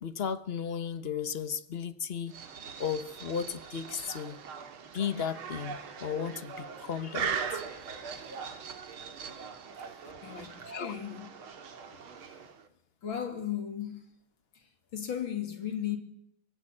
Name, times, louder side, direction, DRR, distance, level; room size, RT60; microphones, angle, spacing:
voice 1, 0.0-2.3 2.8-4.4 4.9-7.3 10.4-10.5 10.7-10.9, left 7 dB, 40° left, 1.0 m, -35 dB
sound 1, 2.3-12.7, right 6 dB, 80° right, 2.7 m, -40 dB
voice 2, 10.2-11.3 13.0-14.0 14.6-16.0, left 9 dB, 65° left, 3.5 m, -36 dB
23.0 x 16.5 x 8.8 m
omnidirectional pair, 2.3 m